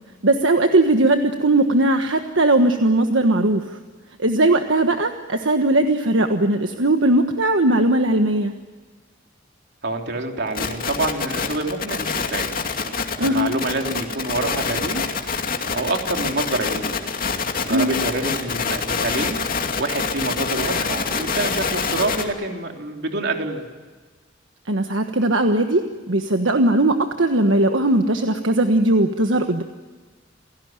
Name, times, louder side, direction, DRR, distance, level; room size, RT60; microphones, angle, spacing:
voice 1, 0.2-3.6 4.2-8.5 13.2-13.5 17.7-17.9 24.7-29.6, right 1 dB, 75° right, 6 dB, 1.4 m, -19 dB
voice 2, 9.8-12.5 13.2-15.1 15.7-17.0 17.6-19.4 19.8-23.6, right 2 dB, 60° right, 3 dB, 3.3 m, -27 dB
sound 1, 10.5-22.2, left 5 dB, 50° left, 2.6 m, -26 dB
28.5 x 18.0 x 9.1 m, 1.4 s
head